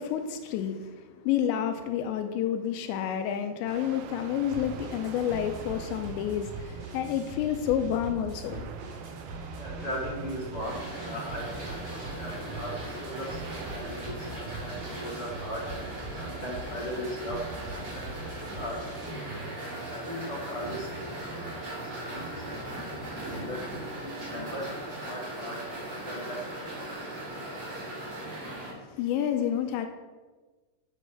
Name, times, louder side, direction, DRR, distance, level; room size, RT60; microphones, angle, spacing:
voice 1, 0.0-8.7 28.3-29.9, left 9 dB, 85° left, 2.9 m, -30 dB
sound 1, 3.7-13.8, right 8 dB, 85° right, 3.1 m, -47 dB
sound 2, 4.5-23.4, right 3 dB, 50° right, 5.9 m, -42 dB
voice 2, 9.6-13.4 13.7-15.7 16.2-17.4 17.7-19.3 19.9-21.1 21.4-27.4, equal, 50° left, 1.6 m, -39 dB
sound 3, 10.6-28.7, right 1 dB, 35° right, 4.9 m, -39 dB
8.6 x 8.1 x 6.9 m
omnidirectional pair, 5.3 m